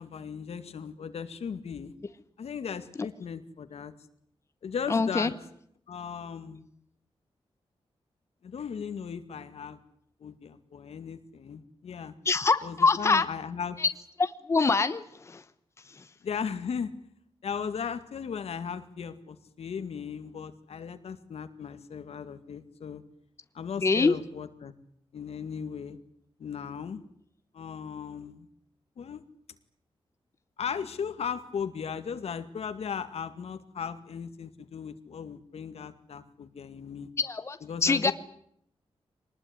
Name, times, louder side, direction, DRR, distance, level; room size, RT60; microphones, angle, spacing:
voice 1, 0.0-1.9 2.4-3.9 4.6-5.3 5.9-6.7 8.4-9.8 10.2-12.1 12.6-13.8 16.2-16.9 17.4-23.0 23.5-24.7 25.1-26.0 26.4-27.0 27.5-28.5 29.0-29.2 30.6-37.1 37.6-38.1, left 7 dB, 90° left, 9 dB, 2.1 m, -37 dB
voice 2, 4.9-5.3 12.2-13.3 13.8-13.9 14.2-15.4 23.8-24.1 37.2-38.1, left 4 dB, 25° left, 11 dB, 0.9 m, -24 dB
24.0 x 19.5 x 9.8 m, 0.70 s
wide cardioid pair, 175°, 10 cm